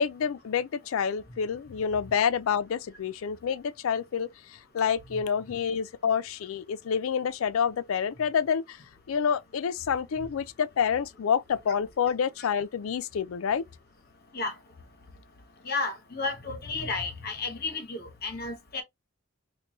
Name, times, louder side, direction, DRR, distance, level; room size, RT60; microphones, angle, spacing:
voice 1, 0.0-4.3 4.7-8.8 9.1-13.6, left 7 dB, 70° left, 0.4 m, -28 dB
voice 2, 15.6-18.8, left 3 dB, 45° left, 0.8 m, -32 dB
4.5 x 2.2 x 2.9 m
head